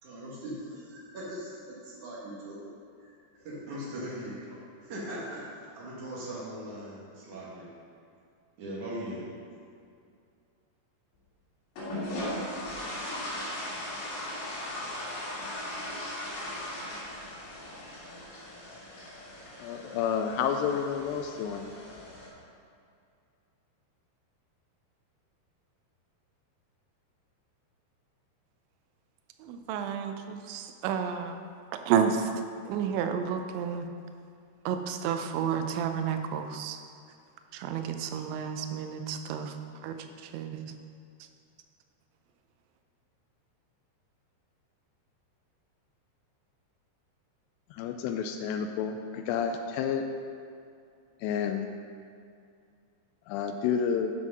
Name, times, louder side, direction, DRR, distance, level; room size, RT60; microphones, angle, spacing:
voice 1, 0.0-2.7 3.0-3.1 3.4-7.7 8.6-9.3, right 1 dB, 55° right, -6 dB, 2.6 m, -40 dB
sound 1, 11.8-22.3, left 1 dB, 70° left, 4.7 m, -38 dB
voice 2, 19.6-21.7 47.7-50.0 51.2-51.7 53.3-54.1, left 7 dB, 85° left, 5 dB, 2.6 m, -30 dB
voice 3, 29.4-31.4 31.7-32.3 32.7-33.9 34.7-36.8 37.5-39.5 39.8-39.9 40.3-40.7, right 7 dB, 90° right, 7 dB, 3.0 m, -31 dB
9.1 x 6.2 x 6.0 m, 2.4 s
omnidirectional pair, 5.1 m